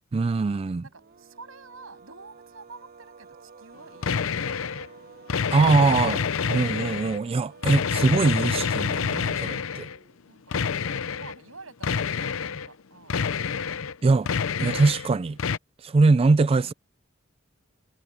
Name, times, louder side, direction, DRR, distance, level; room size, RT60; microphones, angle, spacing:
voice 1, 0.1-0.8 5.5-6.2 6.5-9.9 14.0-14.3 14.6-15.4 15.8-16.7, right 3 dB, 30° right, 0.3 m, -22 dB
voice 2, 0.8-4.7 10.3-13.5 16.7-16.8, right 3 dB, 85° right, 7.9 m, -48 dB
sound 1, 0.9-10.3, right 4 dB, 50° right, 1.1 m, -50 dB
sound 2, 4.0-4.9 5.3-7.2 7.6-10.0 10.5-11.4 11.8-12.7 13.1-13.9 14.3-15.1 15.4-15.6, left 6 dB, 75° left, 0.6 m, -27 dB
head